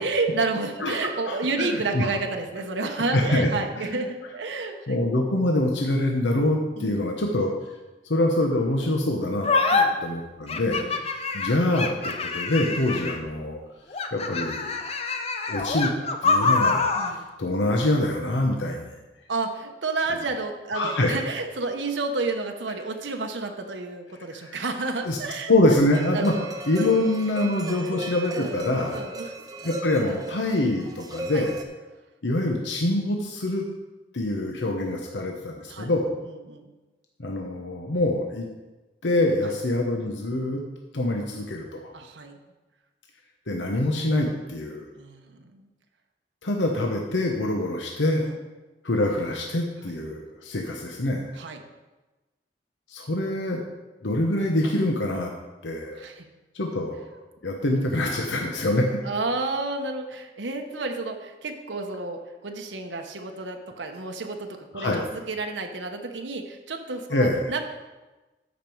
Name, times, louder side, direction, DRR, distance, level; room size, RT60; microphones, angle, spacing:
voice 1, 0.0-4.8 6.8-7.1 9.7-10.0 10.7-11.0 12.6-12.8 16.9-17.3 19.3-25.8 26.1-26.5 26.8-26.9 27.7-27.8 28.3-29.3 31.3-31.5 35.7-35.9 36.5-36.7 39.4-39.5 41.9-42.3 45.0-45.7 48.2-48.4 51.4-51.6 55.9-56.3 59.0-67.7, right 3 dB, 90° right, 4 dB, 1.0 m, -31 dB
voice 2, 1.3-2.1 3.1-3.5 3.8-4.0 4.9-7.5 8.1-9.5 10.0-13.6 14.1-14.7 15.5-15.9 16.2-19.0 20.7-21.1 24.4-24.6 25.0-25.2 25.5-26.3 26.7-29.0 29.6-31.5 32.2-33.6 34.1-36.1 37.2-38.4 39.0-40.6 40.9-41.9 43.5-44.8 46.4-48.3 48.8-51.2 52.9-53.6 54.0-55.3 55.6-56.0 56.5-57.2 57.4-58.9 64.7-65.1 67.1-67.5, left 1 dB, 90° left, 1 dB, 1.0 m, -25 dB
sound 1, 9.4-9.8 10.5-13.3 13.9-17.2, left 4 dB, 35° left, 0.7 m, -25 dB
sound 2, 25.9-31.6, right 2 dB, 20° right, 0.7 m, -37 dB
13.0 x 5.3 x 4.6 m, 1.2 s
head